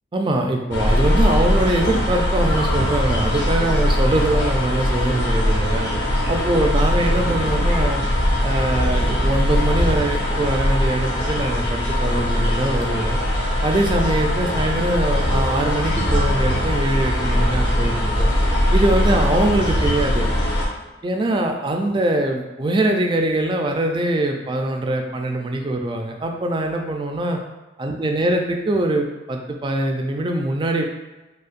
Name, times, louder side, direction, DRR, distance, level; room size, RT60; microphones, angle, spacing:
voice 1, 0.1-5.9 6.3-8.0 8.4-13.2 13.6-18.3 18.7-20.2 21.0-27.4 27.8-30.9, right 1 dB, 25° right, 3 dB, 0.3 m, -22 dB
sound 1, 0.7-20.7, equal, 60° left, 0.9 m, -20 dB
5.1 x 2.1 x 2.4 m, 1.1 s
head